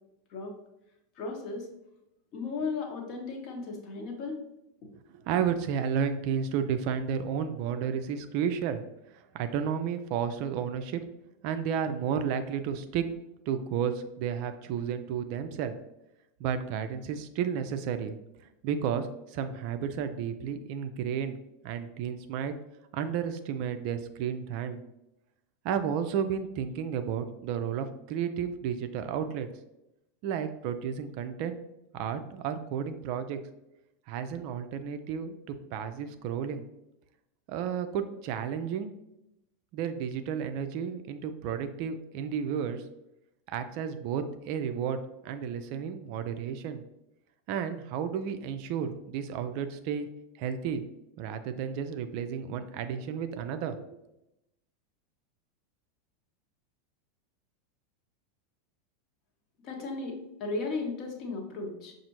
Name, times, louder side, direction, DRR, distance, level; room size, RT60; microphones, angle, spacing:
voice 1, 1.1-1.7 2.3-4.4 4.8-4.9 59.6-61.9, left 3 dB, 45° left, 1 dB, 1.0 m, -35 dB
voice 2, 4.9-8.8 9.3-11.0 11.4-13.1 13.5-15.7 16.4-18.2 18.6-21.4 21.6-22.5 22.9-24.8 25.6-29.5 30.2-31.6 31.9-33.4 34.1-36.6 37.5-38.9 39.7-42.8 43.5-46.8 47.5-50.1 50.4-50.8 51.2-53.8, right 7 dB, 50° right, 9 dB, 0.3 m, -32 dB
6.0 x 2.4 x 2.9 m, 0.88 s
figure-of-eight pair, 85°, 0 cm